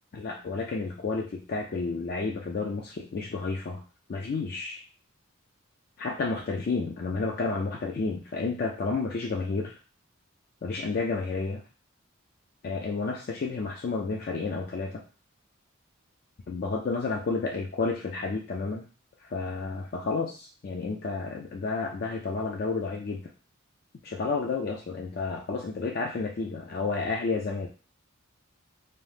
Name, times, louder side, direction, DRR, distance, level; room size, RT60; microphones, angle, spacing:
voice 1, 0.1-3.8 4.1-4.8 6.0-9.8 10.6-11.6 12.6-15.0 16.5-18.9 19.2-23.3 24.0-27.7, left 4 dB, 45° left, 0 dB, 0.3 m, -31 dB
2.7 x 2.0 x 3.2 m, 0.35 s
head